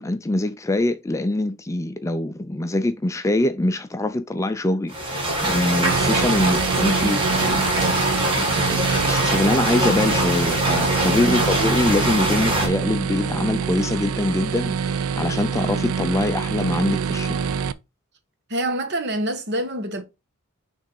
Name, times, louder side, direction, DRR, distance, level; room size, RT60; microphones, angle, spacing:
voice 1, 0.0-17.4, left 1 dB, 15° left, 0.4 m, -24 dB
sound 1, 4.9-12.7, right 1 dB, 25° right, 2.0 m, -23 dB
sound 2, 5.8-17.7, right 6 dB, 85° right, 0.4 m, -26 dB
voice 2, 6.9-7.3 11.2-11.4 18.5-20.0, right 1 dB, 50° right, 1.1 m, -27 dB
6.3 x 3.4 x 4.8 m
head